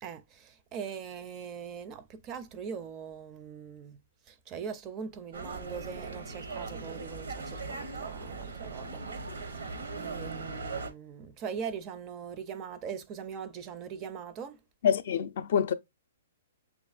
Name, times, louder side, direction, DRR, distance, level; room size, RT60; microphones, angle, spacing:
voice 1, 0.0-4.0 4.3-9.0 9.9-14.6, right 7 dB, 30° right, 0.4 m, -41 dB
sound 1, 5.3-10.9, right 3 dB, 80° right, 0.9 m, -39 dB
voice 2, 14.8-15.7, left 8 dB, 60° left, 0.4 m, -26 dB
6.8 x 2.5 x 2.4 m
hypercardioid pair, 130°, 0 cm